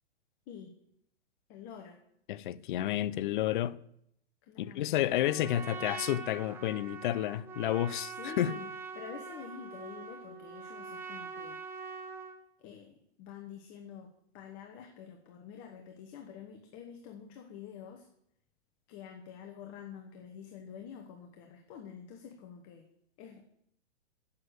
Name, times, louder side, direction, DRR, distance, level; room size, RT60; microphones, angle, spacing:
voice 1, 1.5-2.0 4.4-5.2 8.0-8.7 8.9-11.6 12.6-18.1 18.9-22.9 23.2-23.4, left 8 dB, 30° left, 1.1 m, -48 dB
voice 2, 2.3-3.8 4.6-8.5, left 13 dB, 45° left, 0.5 m, -31 dB
Trumpet, 5.1-12.4, right 5 dB, 5° right, 0.5 m, -43 dB
8.0 x 7.2 x 8.0 m
hypercardioid pair, 145°, 34 cm